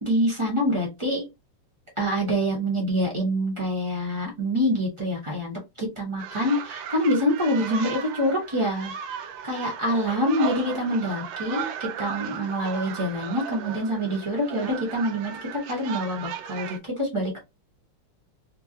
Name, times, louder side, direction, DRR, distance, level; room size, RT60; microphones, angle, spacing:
voice 1, 0.0-1.3 2.0-17.4, equal, 35° right, -2 dB, 0.5 m, -26 dB
sound 1, 6.2-16.8, right 8 dB, 75° right, 1.2 m, -36 dB
4.3 x 2.0 x 2.6 m, 0.22 s
omnidirectional pair, 2.4 m